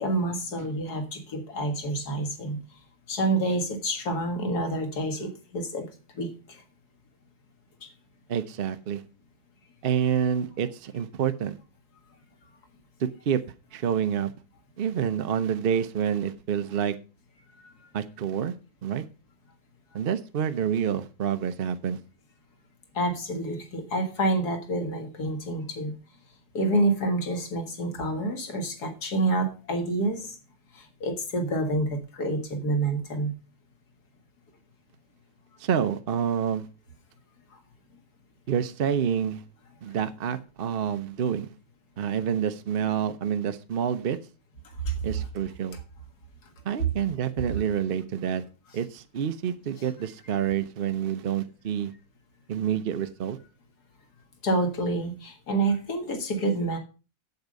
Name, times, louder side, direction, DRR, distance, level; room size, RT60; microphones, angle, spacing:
voice 1, 0.0-2.6 3.1-5.9 6.1-6.6 7.8-7.9 17.6-17.7 22.9-26.0 26.5-30.4 30.7-33.3 44.9-45.2 54.4-56.8, right 2 dB, 90° left, 2.2 m, -28 dB
voice 2, 8.3-9.0 9.8-11.6 13.0-13.4 13.7-14.3 14.8-17.0 17.9-18.5 18.8-19.0 19.9-22.0 35.6-36.7 38.5-39.4 39.8-41.5 42.0-44.2 45.0-45.8 46.6-48.4 48.7-51.9 52.5-53.4, right 8 dB, 50° right, 0.7 m, -28 dB
8.1 x 8.1 x 5.1 m
omnidirectional pair, 1.6 m